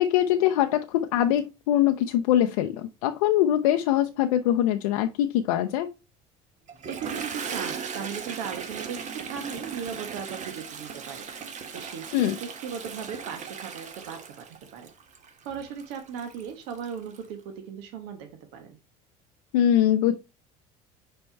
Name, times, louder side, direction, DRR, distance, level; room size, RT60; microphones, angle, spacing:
voice 1, 0.0-5.9 12.1-12.4 19.5-20.2, left 11 dB, 85° left, 0.5 m, -23 dB
Toilet flush, 6.7-17.3, right 6 dB, 45° right, 1.3 m, -38 dB
voice 2, 6.9-11.3 11.7-14.9 15.4-18.8, right 7 dB, 70° right, 1.2 m, -37 dB
5.4 x 4.4 x 4.4 m
supercardioid pair, 80°, 17 cm